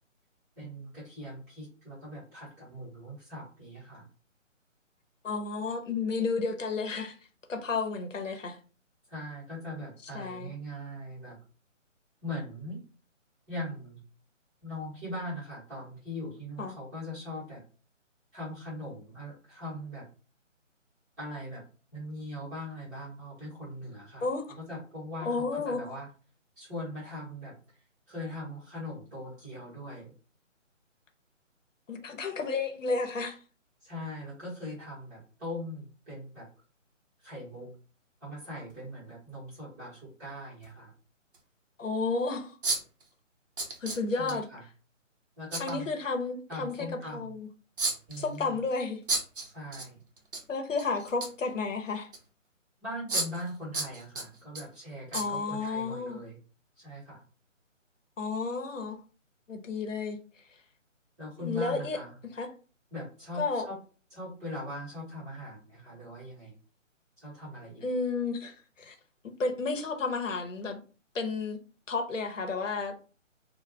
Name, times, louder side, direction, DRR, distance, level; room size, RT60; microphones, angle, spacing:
voice 1, 0.6-4.0 9.1-11.4 12.2-12.8 13.5-14.0 14.6-17.6 18.3-20.1 21.2-21.6 21.9-24.2 24.6-26.1 26.6-27.6 28.1-30.1 33.8-36.5 37.2-37.7 38.2-40.9 44.2-44.6 45.4-45.9 46.5-47.3 48.1-48.5 49.4-50.0 52.8-56.4 56.8-57.2 61.2-62.1 62.9-63.8 64.1-66.5 67.2-67.8, left 1 dB, 15° right, 1.0 m, -40 dB
voice 2, 5.2-7.2 7.5-8.6 10.1-10.5 16.6-16.7 24.2-24.5 25.2-25.8 31.9-33.4 41.8-42.5 43.8-44.5 45.6-46.9 47.1-47.5 48.2-49.0 50.5-52.1 55.1-56.2 58.2-59.0 59.5-60.2 61.4-62.0 62.3-62.5 63.4-63.7 67.8-68.9 69.4-70.8 71.1-71.6 71.9-73.1, left 4 dB, 75° left, 0.8 m, -32 dB
sound 1, 38.7-38.8 40.6-40.7 41.3-41.4 42.6-43.0 43.6-44.3 45.5-45.7 47.8-48.3 49.1-49.9 50.2-50.4 50.8-51.5 52.1-52.2 53.1-53.5 53.7-54.6 55.1-55.3 55.7-55.8, right 3 dB, 45° right, 0.7 m, -32 dB
2.4 x 2.2 x 3.1 m
figure-of-eight pair, 155°, 39 cm